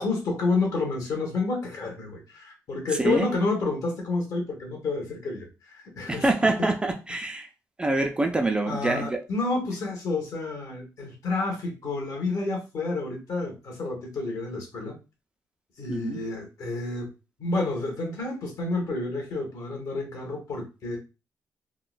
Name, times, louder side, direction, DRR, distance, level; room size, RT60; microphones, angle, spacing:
voice 1, 0.0-6.3 6.6-6.7 8.7-14.9 15.8-17.1 17.4-21.0, left 3 dB, 65° left, 1.2 m, -29 dB
voice 2, 3.0-3.3 6.1-7.5 7.8-9.2 15.9-16.2, right 2 dB, 15° right, 0.3 m, -25 dB
3.7 x 2.1 x 2.4 m
cardioid pair, 150°, 6 cm